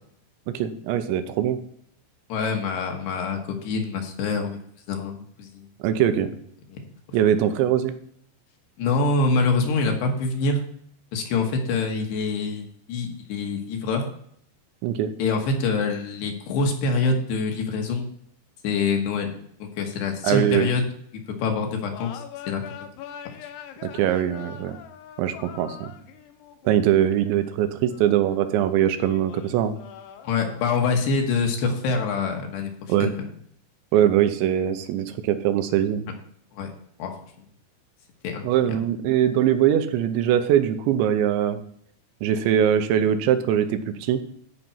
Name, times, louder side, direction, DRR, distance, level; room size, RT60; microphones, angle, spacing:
voice 1, 0.5-1.6 5.8-6.3 7.1-7.9 14.8-15.1 20.2-20.7 23.8-24.8 25.2-25.9 26.6-29.7 32.9-33.1 33.9-36.0 38.4-41.6 42.2-44.2, right 10 dB, 90° right, 9 dB, 3.1 m, -22 dB
voice 2, 2.3-4.6 4.9-5.7 6.7-6.8 8.8-10.6 11.1-14.1 15.2-18.1 18.6-20.8 21.4-22.9 30.2-33.3 36.5-36.7 37.0-37.1 38.2-38.8, left 4 dB, 70° left, 2 dB, 3.3 m, -25 dB
sound 1, 21.9-28.5 28.9-31.1, left 9 dB, 90° left, 1.9 m, -43 dB
14.0 x 5.3 x 4.5 m, 0.65 s
omnidirectional pair, 5.2 m